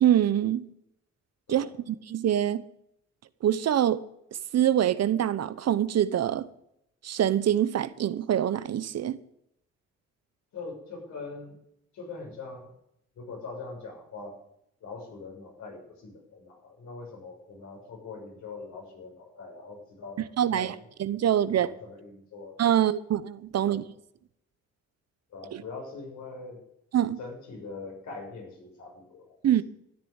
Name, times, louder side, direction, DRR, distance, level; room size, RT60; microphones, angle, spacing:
voice 1, 0.0-0.6 1.5-2.6 3.4-4.0 4.5-6.5 7.0-9.2 20.4-21.7 22.6-23.8 25.5-25.6 26.9-27.2 29.4-29.6, right 10 dB, 60° right, 1.0 m, -25 dB
voice 2, 10.5-11.6 11.9-12.7 13.1-14.4 14.8-20.8 21.5-22.6 23.6-23.8 25.3-26.6 27.2-29.6, left 3 dB, 70° left, 6.7 m, -42 dB
13.5 x 10.0 x 8.1 m
cardioid pair, 90°, 30 cm